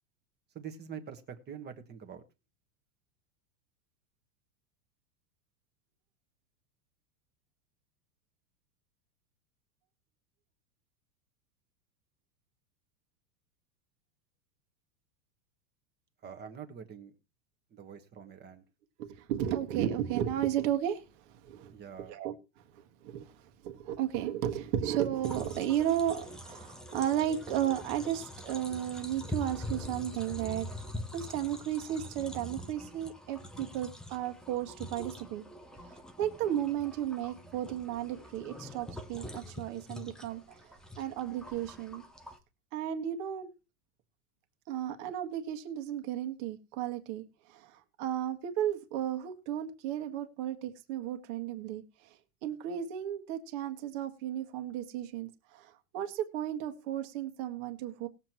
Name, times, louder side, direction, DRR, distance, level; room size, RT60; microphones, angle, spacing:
voice 1, 0.5-2.2 16.2-17.1 17.7-18.6 21.7-22.2, right 7 dB, 20° right, 7 dB, 1.4 m, -45 dB
voice 2, 19.0-21.0 21.3-21.7 22.1-22.3 23.0-23.3 23.6-30.7 31.1-35.4 35.9-42.0 42.7-43.5 44.7-47.2 47.5-51.8 52.4-58.1, right 11 dB, 45° right, 5 dB, 1.7 m, -34 dB
sound 1, 25.2-42.4, left 1 dB, ahead, 0.5 m, -44 dB
19.5 x 7.6 x 3.0 m, 0.30 s
supercardioid pair, 140°, 49 cm